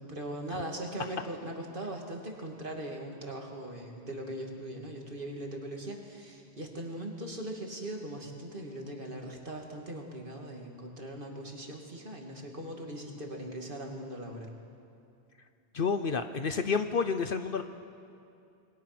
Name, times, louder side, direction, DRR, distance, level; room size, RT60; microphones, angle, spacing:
voice 1, 0.0-14.5, right 1 dB, 50° right, 1 dB, 2.7 m, -40 dB
voice 2, 15.7-17.6, left 5 dB, 55° left, 9 dB, 1.0 m, -29 dB
27.0 x 21.5 x 6.1 m, 2.5 s
omnidirectional pair, 1.2 m